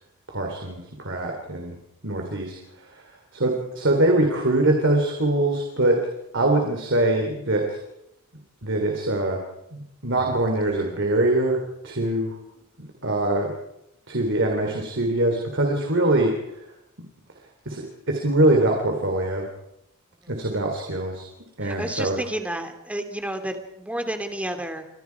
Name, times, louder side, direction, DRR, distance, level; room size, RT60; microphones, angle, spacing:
voice 1, 0.3-1.8 2.0-6.0 6.3-7.8 8.6-9.4 9.7-12.4 12.8-13.5 14.1-16.6 17.7-19.5 20.3-21.3 21.6-22.2, right 1 dB, 60° right, 2 dB, 3.8 m, -23 dB
voice 2, 21.6-24.9, right 1 dB, 5° right, 7 dB, 2.6 m, -31 dB
30.0 x 25.5 x 4.8 m, 0.82 s
head